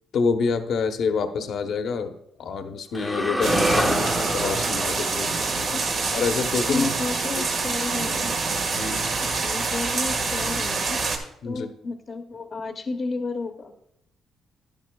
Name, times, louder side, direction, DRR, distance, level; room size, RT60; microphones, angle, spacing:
voice 1, 0.1-2.1 2.4-5.3 6.1-6.9 8.7-9.1 11.4-11.7, left 5 dB, 65° left, 7 dB, 0.9 m, -27 dB
sound 1, 2.9-7.2, equal, ahead, 0.9 m, -28 dB
sound 2, 3.4-11.2, right 4 dB, 60° right, 1.6 m, -26 dB
voice 2, 6.7-8.3 9.2-11.0 11.4-13.7, left 3 dB, 40° left, 5 dB, 0.8 m, -32 dB
10.5 x 10.5 x 2.3 m, 0.76 s
cardioid pair, 90°, 0 cm